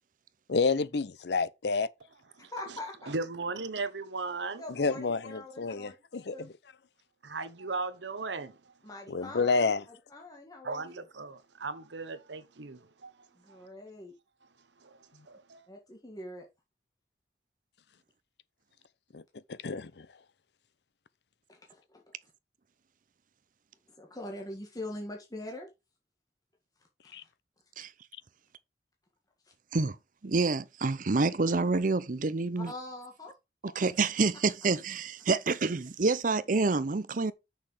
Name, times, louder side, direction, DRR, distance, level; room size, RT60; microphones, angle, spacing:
voice 1, 0.5-1.9 4.8-6.5 9.1-9.8 19.1-19.2 19.5-20.1 27.1-27.2, left 4 dB, 70° left, 0.6 m, -29 dB
voice 2, 2.4-3.1 4.6-6.0 6.3-6.5 8.8-11.0 13.3-14.1 15.7-16.5 21.5-22.0 23.9-25.7 27.0-27.3 29.4-29.5 32.6-33.4, left 2 dB, 20° left, 1.7 m, -43 dB
voice 3, 3.1-4.6 7.2-8.7 10.6-13.7 14.8-15.7, right 3 dB, 90° right, 1.0 m, -37 dB
voice 4, 30.2-32.7 33.8-37.3, right 3 dB, 50° right, 0.6 m, -27 dB
6.7 x 6.0 x 4.9 m
head